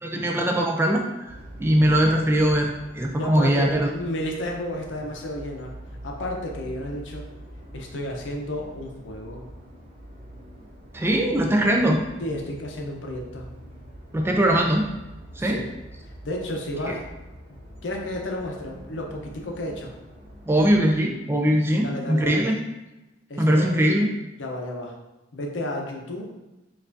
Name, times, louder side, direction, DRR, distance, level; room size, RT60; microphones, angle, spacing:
voice 1, 0.0-3.9 10.9-12.0 14.1-14.9 15.4-15.6 16.9-17.0 20.5-22.6 23.4-24.1, right 1 dB, 15° right, 1 dB, 0.3 m, -21 dB
sound 1, 1.2-20.9, equal, 35° right, 0.9 m, -44 dB
voice 2, 3.2-5.7 6.0-7.2 7.7-9.4 12.2-13.5 15.4-15.7 16.2-17.1 17.8-19.9 21.8-22.4 23.3-23.7 24.4-25.0 25.3-26.3, left 1 dB, 75° left, 1 dB, 0.6 m, -32 dB
4.5 x 2.4 x 2.5 m, 1.0 s
head